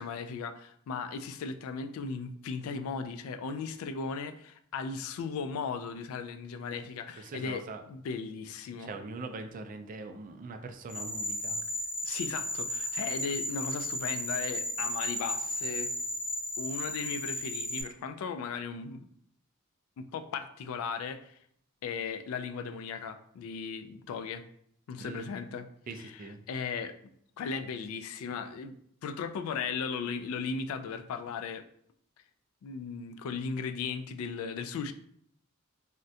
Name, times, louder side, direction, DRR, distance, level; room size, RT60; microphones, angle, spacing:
voice 1, 0.0-8.9 12.0-15.9 16.6-19.1 20.0-21.4 21.8-24.4 24.9-25.7 26.0-27.0 27.4-28.8 29.0-31.6 32.6-34.9, left 5 dB, 90° left, 13 dB, 0.3 m, -37 dB
voice 2, 7.2-7.8 8.8-11.6 25.0-25.3 25.9-26.4, right 3 dB, 40° right, 7 dB, 0.3 m, -42 dB
sound 1, 10.9-17.8, equal, 25° left, 0.5 m, -34 dB
3.6 x 2.1 x 2.6 m, 0.66 s
head